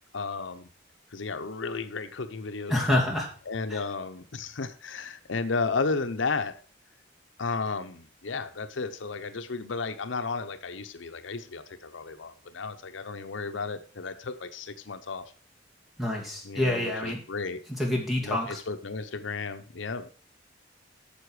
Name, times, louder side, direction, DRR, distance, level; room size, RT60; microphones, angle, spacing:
voice 1, 0.1-0.7 1.1-2.7 3.5-6.6 7.4-15.3 16.4-17.6 18.2-20.1, left 4 dB, 85° left, 9 dB, 0.8 m, -33 dB
voice 2, 2.7-3.3 3.7-3.8 16.0-17.2 17.8-18.6, left 1 dB, ahead, -1 dB, 2.6 m, -27 dB
9.8 x 6.9 x 4.8 m, 0.40 s
head